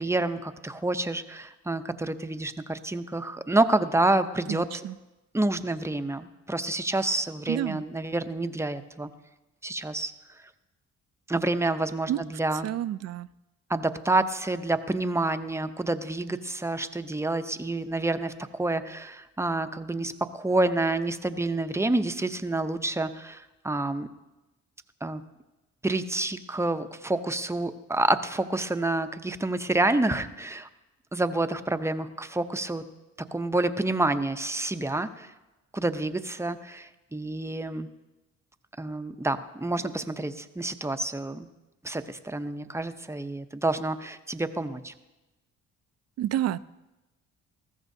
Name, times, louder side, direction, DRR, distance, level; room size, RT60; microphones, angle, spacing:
voice 1, 0.0-4.8 5.3-9.1 9.6-10.1 11.3-12.7 13.7-24.1 25.0-25.2 25.8-30.7 31.1-32.8 33.3-35.3 35.7-37.9 38.8-41.5 41.8-44.9, right 2 dB, 10° right, 9 dB, 0.7 m, -28 dB
voice 2, 4.5-4.9 7.5-7.8 12.1-12.2 12.6-13.3 46.2-46.6, right 12 dB, 55° right, 17 dB, 0.4 m, -29 dB
20.0 x 14.5 x 2.7 m, 1.1 s
cardioid pair, 90°, 30 cm